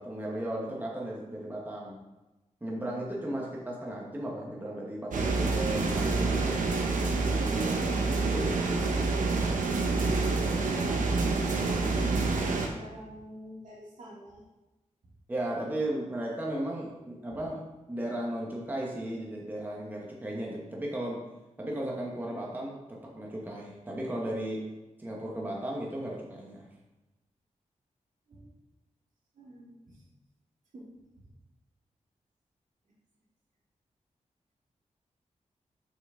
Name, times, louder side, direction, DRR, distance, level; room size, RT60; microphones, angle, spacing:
voice 1, 0.0-2.0 2.6-6.3 8.3-8.7 15.3-17.6 17.9-21.2 21.6-24.6 25.0-26.7, right 1 dB, 15° right, -3 dB, 1.1 m, -35 dB
sound 1, 5.1-12.7, right 3 dB, 90° right, 0.9 m, -27 dB
voice 2, 7.5-8.0 9.8-14.4 28.3-28.5 29.4-30.0 30.7-30.9, equal, 70° right, -6 dB, 2.5 m, -47 dB
6.6 x 6.1 x 3.6 m, 1.0 s
wide cardioid pair, 125°, 13 cm